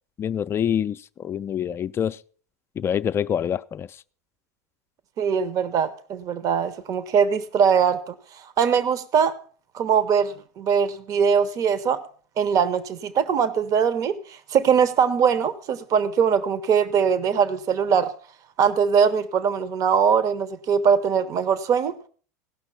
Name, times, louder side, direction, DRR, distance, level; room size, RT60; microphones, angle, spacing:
voice 1, 0.2-2.2 2.8-3.9, left 9 dB, 30° left, 0.4 m, -26 dB
voice 2, 5.2-8.1 8.6-9.4 9.7-12.0 12.4-14.2 14.5-18.1 18.6-21.9, right 7 dB, 40° right, 0.9 m, -21 dB
17.0 x 6.0 x 5.7 m
hypercardioid pair, 85°, 9 cm